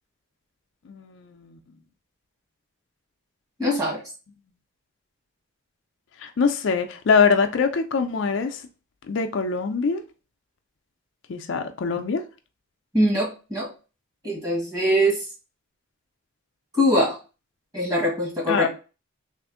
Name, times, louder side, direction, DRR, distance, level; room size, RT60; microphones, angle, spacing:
voice 1, 0.9-1.6 6.2-8.6 9.1-10.0 11.3-12.2 18.5-18.7, left 5 dB, 60° left, 0.4 m, -23 dB
voice 2, 3.6-4.0 12.9-13.7 14.2-15.2 16.7-17.2 17.7-18.7, equal, 15° right, 1.4 m, -22 dB
3.4 x 2.5 x 3.6 m
head